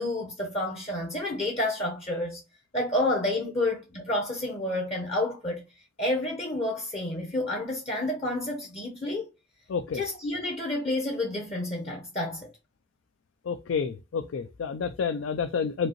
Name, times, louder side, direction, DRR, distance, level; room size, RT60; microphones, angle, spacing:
voice 1, 0.0-2.4 2.7-5.6 6.0-9.3 9.9-12.5, left 1 dB, 30° left, 0.7 m, -29 dB
voice 2, 9.7-10.0 13.5-15.9, left 6 dB, 65° left, 0.3 m, -29 dB
5.1 x 2.7 x 2.9 m
head